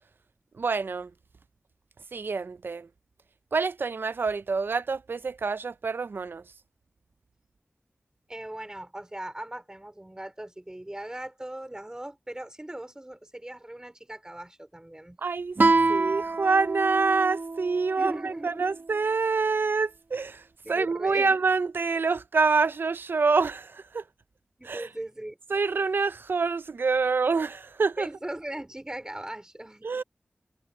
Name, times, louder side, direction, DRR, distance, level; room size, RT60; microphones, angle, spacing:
voice 1, 0.6-1.1 2.1-2.9 3.5-6.4 15.2-15.6 15.9-24.0 24.6-24.9 25.5-28.1 29.8-30.0, right 4 dB, 80° right, 0.4 m, -26 dB
voice 2, 8.3-15.2 17.9-18.7 20.6-21.3 24.6-25.4 28.0-30.0, right 1 dB, 20° right, 3.8 m, -39 dB
Guitar, 15.6-18.8, right 3 dB, 60° right, 1.3 m, -27 dB
wide cardioid pair, 80°, 4 cm